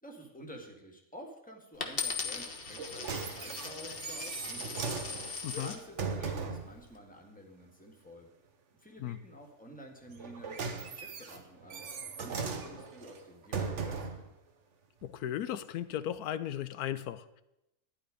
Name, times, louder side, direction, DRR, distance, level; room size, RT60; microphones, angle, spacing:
voice 1, 0.0-5.0 5.5-8.3 8.8-11.9 12.2-14.2, equal, 5° left, 1 dB, 1.8 m, -50 dB
Coin (dropping), 1.8-5.8 6.5-6.9, left 5 dB, 40° left, 1.3 m, -39 dB
sound 1, 2.7-6.7 10.1-14.3 15.0-15.1, right 5 dB, 55° right, 1.3 m, -38 dB
voice 2, 15.0-17.4, left 11 dB, 90° left, 13 dB, 1.1 m, -36 dB
12.0 x 10.0 x 5.1 m, 0.87 s
omnidirectional pair, 1.6 m